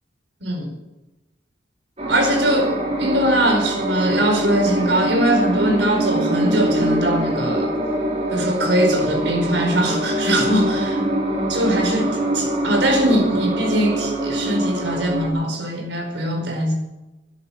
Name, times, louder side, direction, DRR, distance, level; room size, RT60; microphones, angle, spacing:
voice 1, 0.4-0.7 2.1-7.7 8.3-11.0 11.5-16.7, right 1 dB, 80° right, 2 dB, 4.8 m, -21 dB
sound 1, 2.0-15.3, right 1 dB, 35° right, 4.2 m, -23 dB
14.0 x 10.5 x 8.8 m, 1.0 s
head